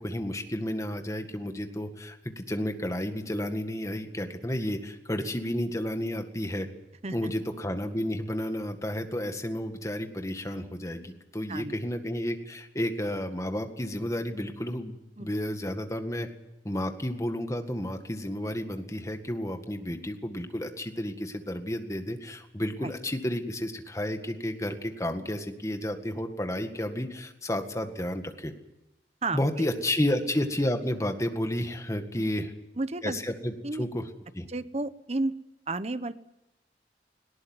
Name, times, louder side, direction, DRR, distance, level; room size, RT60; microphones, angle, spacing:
voice 1, 0.0-6.7 7.1-16.3 16.6-28.5 29.3-32.5 33.0-34.1 34.3-34.5, left 1 dB, 15° left, 6 dB, 1.8 m, -31 dB
voice 2, 29.2-29.7 32.8-33.2 33.6-33.8 34.5-35.3 35.7-36.1, right 2 dB, 35° right, 13 dB, 0.9 m, -32 dB
19.0 x 18.0 x 9.7 m, 0.91 s
head